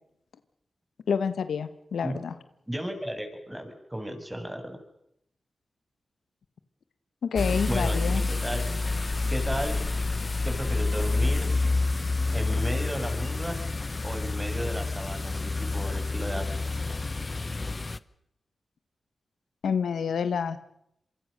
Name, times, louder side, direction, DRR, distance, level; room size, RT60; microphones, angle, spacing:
voice 1, 1.1-2.3 7.2-8.2 19.6-20.6, left 6 dB, 85° left, 12 dB, 1.3 m, -28 dB
voice 2, 2.7-4.8 7.7-8.6 9.3-9.7 10.4-11.4 12.3-13.5 14.0-16.4, equal, 15° right, 5 dB, 7.1 m, -34 dB
sound 1, 7.4-18.0, left 3 dB, 40° left, 1.0 m, -28 dB
26.5 x 23.5 x 6.7 m, 0.78 s
cardioid pair, 45°, 0 cm